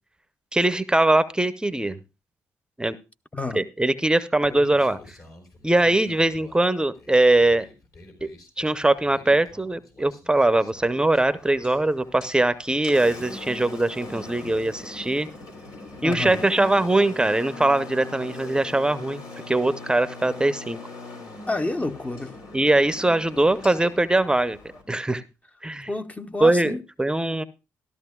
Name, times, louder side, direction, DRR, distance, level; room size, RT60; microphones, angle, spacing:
voice 1, 0.5-2.0 2.8-3.0 3.5-5.0 5.6-7.7 8.2-8.3 8.6-15.3 16.0-20.8 22.5-24.6 24.9-25.2 25.6-25.9 26.4-27.4, right 2 dB, 15° right, 0.7 m, -21 dB
voice 2, 3.3-3.6 16.0-16.4 21.5-22.3 25.9-26.8, left 2 dB, 20° left, 0.8 m, -29 dB
Human voice, 4.4-11.2, left 2 dB, 60° left, 4.2 m, -48 dB
Engine, 10.8-24.8, left 2 dB, 80° left, 3.0 m, -41 dB
14.0 x 13.0 x 2.3 m
supercardioid pair, 65°, 7 cm